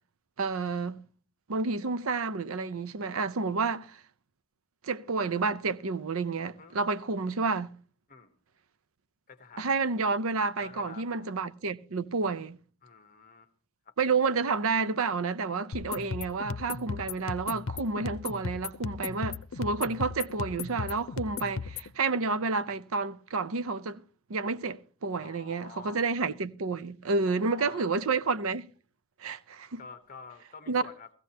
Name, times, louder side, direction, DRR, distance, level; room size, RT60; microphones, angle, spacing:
voice 1, 0.4-1.0 1.5-4.0 4.8-7.7 9.6-12.6 14.0-24.0 24.3-28.7 29.2-29.8 30.7-30.8, right 4 dB, 75° right, 0.6 m, -30 dB
voice 2, 9.3-9.7 10.6-11.4 12.8-13.5 13.8-13.9 25.2-26.2 27.2-28.0 29.8-31.1, left 5 dB, 40° left, 1.1 m, -49 dB
sound 1, 15.7-21.9, left 5 dB, 70° left, 0.7 m, -36 dB
17.0 x 15.5 x 2.8 m
head